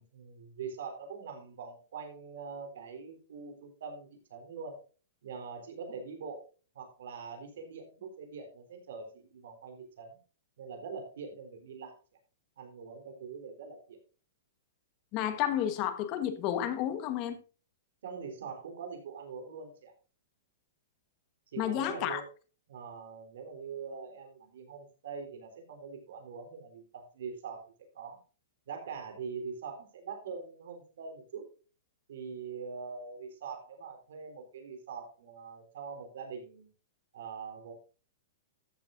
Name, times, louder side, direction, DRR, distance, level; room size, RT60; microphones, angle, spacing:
voice 1, 0.0-4.8 5.2-6.4 6.7-10.2 10.6-12.0 12.6-14.0 18.0-19.9 21.5-22.3 22.7-28.2 28.7-31.5 32.1-36.7 37.1-37.7, right 5 dB, 70° right, 3.9 m, -43 dB
voice 2, 15.1-17.4 21.6-22.2, left 11 dB, 30° left, 1.3 m, -31 dB
14.0 x 8.1 x 2.6 m
hypercardioid pair, 170°, 0 cm